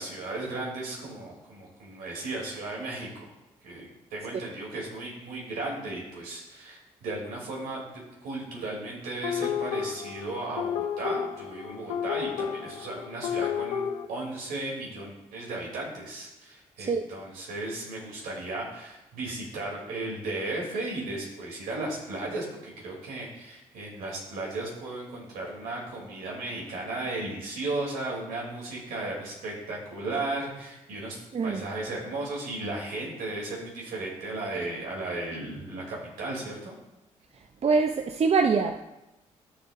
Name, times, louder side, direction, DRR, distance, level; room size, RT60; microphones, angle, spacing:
voice 1, 0.0-3.3 3.6-7.9 8.2-13.8 14.1-31.2 31.4-36.7, right 2 dB, 75° right, 3.0 m, -35 dB
sound 1, 9.2-14.1, left 8 dB, 90° left, 0.7 m, -31 dB
voice 2, 37.6-38.8, right 4 dB, 45° right, 0.6 m, -24 dB
13.0 x 7.1 x 2.6 m
hypercardioid pair, 45°, 15 cm